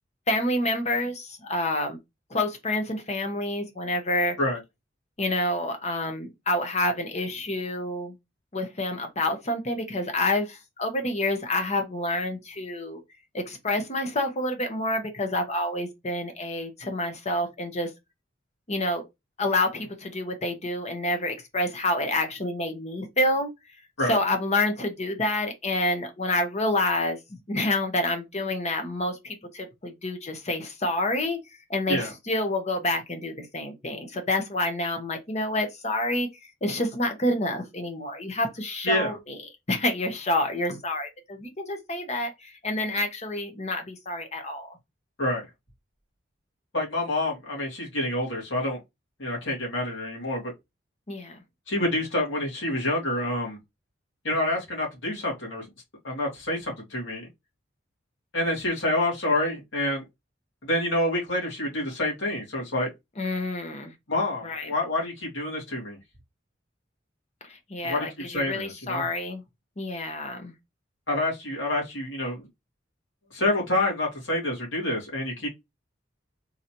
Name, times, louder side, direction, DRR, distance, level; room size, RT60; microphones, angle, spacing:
voice 1, 0.3-2.0 2.3-4.4 5.2-8.1 8.5-13.0 13.3-17.9 18.7-19.0 19.4-23.5 24.1-31.4 31.7-36.3 36.6-39.4 39.7-44.7 51.1-51.4 63.2-63.9 64.4-64.7 67.4-69.4 69.8-70.5, left 1 dB, 35° left, 1.0 m, -28 dB
voice 2, 38.8-39.2 45.2-45.4 46.7-48.8 49.2-50.5 51.7-53.6 54.2-55.7 56.0-57.3 58.3-60.0 60.6-62.9 64.1-66.0 67.8-69.0 71.1-72.4 73.3-75.5, left 1 dB, 85° left, 2.2 m, -27 dB
4.0 x 3.0 x 2.9 m
head